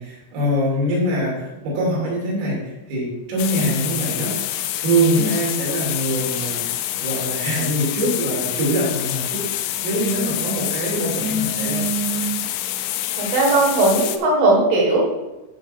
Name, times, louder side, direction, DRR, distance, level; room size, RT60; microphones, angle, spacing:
voice 1, 0.0-4.5 4.8-9.5 9.8-11.8, right 1 dB, 85° right, -5 dB, 5.7 m, -23 dB
sound 1, 3.4-14.2, left 12 dB, 85° left, 3.2 m, -27 dB
voice 2, 11.2-12.4 13.2-15.0, right 2 dB, 65° right, -1 dB, 2.3 m, -20 dB
13.5 x 5.6 x 3.6 m, 1.1 s
omnidirectional pair, 5.9 m